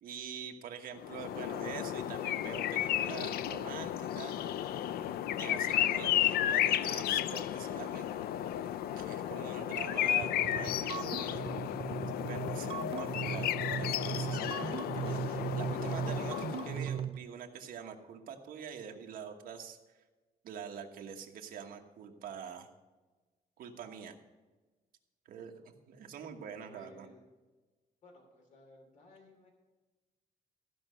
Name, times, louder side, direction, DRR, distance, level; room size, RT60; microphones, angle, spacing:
voice 1, 0.0-4.3 5.3-8.1 9.0-11.4 12.3-19.8 20.4-22.7 23.6-24.1 25.3-27.1, right 7 dB, 70° right, 3 dB, 1.3 m, -45 dB
sound 1, 1.0-16.9, left 12 dB, 80° left, 0.4 m, -33 dB
sound 2, 10.2-17.2, right 8 dB, 35° right, 0.4 m, -38 dB
voice 2, 26.6-27.2 28.0-29.5, left 2 dB, 55° left, 2 dB, 2.8 m, -57 dB
14.5 x 5.5 x 6.2 m, 1.2 s
cardioid pair, 165°, 15 cm